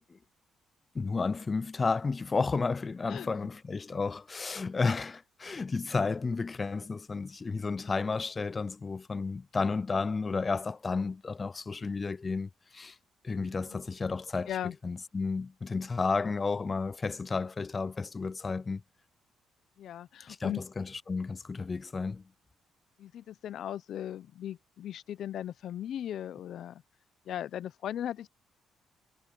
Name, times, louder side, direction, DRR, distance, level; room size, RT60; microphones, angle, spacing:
voice 1, 0.9-13.0 13.2-18.8 20.3-22.2, left 4 dB, 30° left, 0.3 m, -32 dB
voice 2, 13.5-13.8 14.5-14.8 19.8-20.6 23.0-26.8 27.3-28.3, left 11 dB, 70° left, 0.7 m, -38 dB
cardioid pair, 90°, 0 cm